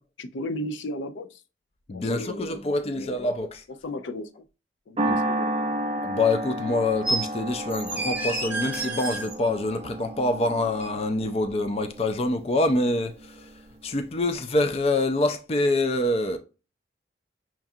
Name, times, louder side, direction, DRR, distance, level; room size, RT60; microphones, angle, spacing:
voice 1, 0.0-1.4 1.9-3.2 3.8-4.3 4.9-5.5, left 1 dB, 85° left, 0.5 m, -35 dB
voice 2, 1.9-3.6 5.1-5.2 6.0-13.4 13.8-16.4, left 2 dB, 35° left, 0.4 m, -25 dB
sound 1, 5.0-13.5, right 1 dB, 30° right, 0.4 m, -32 dB
sound 2, 7.0-7.2 7.7-9.4 10.8-10.9, right 2 dB, 10° right, 0.8 m, -29 dB
5.8 x 2.4 x 2.6 m
head